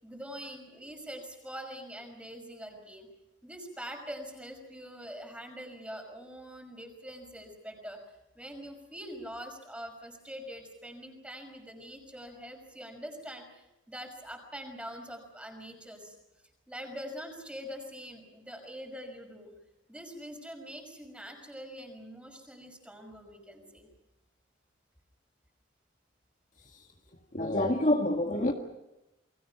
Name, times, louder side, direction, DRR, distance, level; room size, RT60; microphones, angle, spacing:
voice 1, 0.0-3.1 3.4-8.0 8.4-16.2 16.7-19.5 19.9-23.9, equal, 5° right, 4 dB, 5.7 m, -44 dB
voice 2, 27.1-28.5, left 1 dB, 40° left, 2 dB, 1.8 m, -28 dB
29.5 x 22.5 x 5.8 m, 0.94 s
head